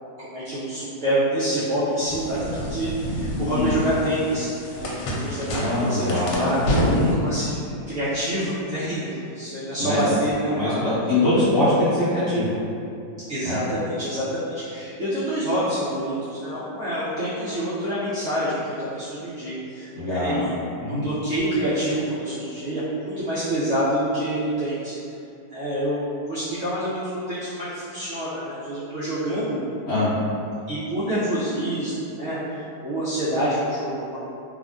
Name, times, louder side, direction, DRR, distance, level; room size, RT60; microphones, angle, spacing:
voice 1, 0.2-5.5 5.8-6.6 7.2-10.8 13.3-20.5 20.9-24.9 25.5-29.6 30.7-34.2, right 1 dB, 75° right, -12 dB, 0.7 m, -27 dB
sound 1, 2.1-7.2, equal, 85° left, 1.2 m, -27 dB
voice 2, 5.5-6.3 6.9-7.1 9.8-10.0 10.5-12.5 13.4-13.6 19.9-20.5 20.8-21.0 29.9-30.1, left 1 dB, 60° left, -14 dB, 0.7 m, -22 dB
3.3 x 2.1 x 2.4 m, 2.6 s
omnidirectional pair, 1.9 m